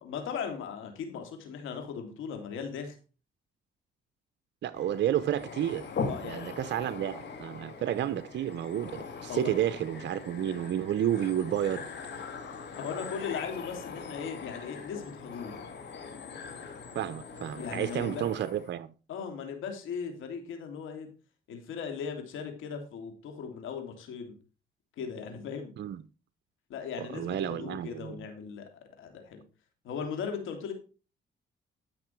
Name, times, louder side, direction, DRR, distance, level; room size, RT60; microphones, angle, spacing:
voice 1, 0.0-2.9 6.1-6.5 9.3-9.5 12.8-15.6 17.5-18.2 19.1-21.1 21.5-24.3 25.0-25.7 26.7-29.4 29.8-30.7, left 6 dB, 85° left, 2.9 m, -38 dB
voice 2, 4.6-5.9 6.2-11.9 16.9-18.9 25.8-26.0 27.0-28.2, right 11 dB, 60° right, 0.7 m, -31 dB
sound 1, 4.7-18.7, left 5 dB, 60° left, 2.6 m, -41 dB
13.0 x 6.1 x 4.5 m
cardioid pair, 90°, 20 cm